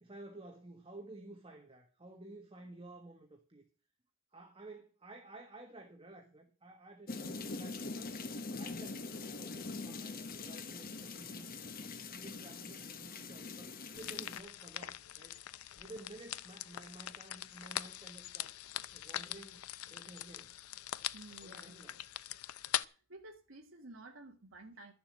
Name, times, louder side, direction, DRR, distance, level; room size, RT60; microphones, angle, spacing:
voice 1, 0.0-3.6 4.3-8.1 8.6-11.5 12.1-15.4 15.8-18.5 18.9-20.5 21.4-22.0, right 2 dB, 25° right, 1.4 m, -53 dB
sound 1, 7.1-14.4, left 3 dB, 40° left, 1.0 m, -43 dB
sound 2, 14.0-22.8, left 12 dB, 90° left, 0.5 m, -42 dB
voice 2, 21.1-21.7 22.9-24.9, right 2 dB, 65° right, 1.8 m, -53 dB
12.5 x 7.1 x 7.5 m
head